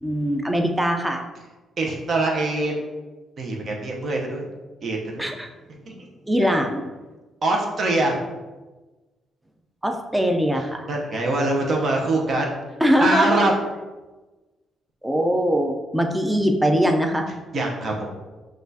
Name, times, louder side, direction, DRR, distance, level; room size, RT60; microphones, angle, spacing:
voice 1, 0.0-1.2 5.2-5.5 6.2-6.9 9.8-10.8 12.8-13.5 15.0-17.3, equal, 10° right, 3 dB, 0.5 m, -21 dB
voice 2, 1.8-2.8 3.4-4.5 4.8-5.3 5.9-6.0 7.4-8.2 10.9-12.6 13.0-13.5 17.5-18.1, right 2 dB, 50° right, -1 dB, 0.8 m, -23 dB
5.9 x 2.5 x 2.7 m, 1.2 s
cardioid pair, 90°, 0 cm